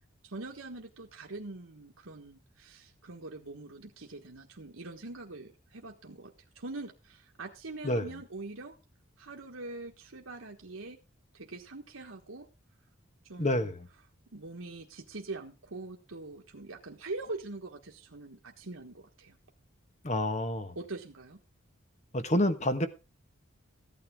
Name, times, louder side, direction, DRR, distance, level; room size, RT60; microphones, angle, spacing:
voice 1, 0.2-8.8 9.2-11.0 11.3-12.5 13.2-13.7 14.3-19.4 20.7-21.4, right 2 dB, 85° right, 1.4 m, -43 dB
voice 2, 13.4-13.9 20.0-20.8 22.1-22.9, left 1 dB, 35° left, 1.4 m, -28 dB
15.5 x 9.6 x 3.6 m
head